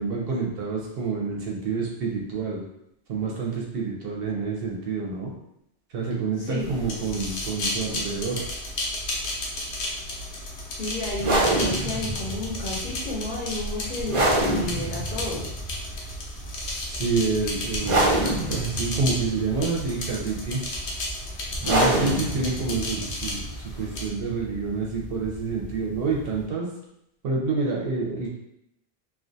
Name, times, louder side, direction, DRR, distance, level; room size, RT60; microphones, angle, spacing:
voice 1, 0.0-2.6 3.1-5.3 5.9-8.4 16.9-20.6 21.7-26.7 27.2-28.3, right 4 dB, 70° right, -2 dB, 0.7 m, -28 dB
voice 2, 6.4-6.7 10.7-15.6, left 2 dB, 55° left, -4 dB, 0.7 m, -32 dB
sound 1, 6.6-24.1, left 1 dB, 85° left, 0.9 m, -33 dB
sound 2, 11.1-26.4, right 1 dB, 40° right, 0.5 m, -28 dB
2.4 x 2.2 x 2.5 m, 0.79 s
omnidirectional pair, 1.1 m